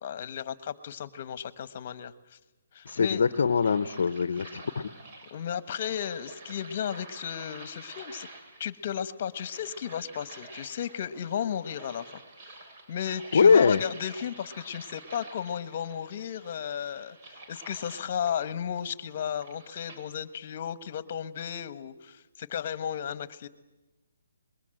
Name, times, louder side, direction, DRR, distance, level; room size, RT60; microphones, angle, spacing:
voice 1, 0.0-2.4 2.7-3.2 5.3-8.3 8.6-12.6 12.9-23.5, left 9 dB, 40° left, 14 dB, 1.3 m, -34 dB
sound 1, 2.8-20.1, right 2 dB, 35° right, 4.5 m, -49 dB
voice 2, 2.9-4.9 13.1-13.8, left 5 dB, 65° left, 13 dB, 0.8 m, -23 dB
23.5 x 21.5 x 7.9 m, 1.1 s
hypercardioid pair, 155°, 0 cm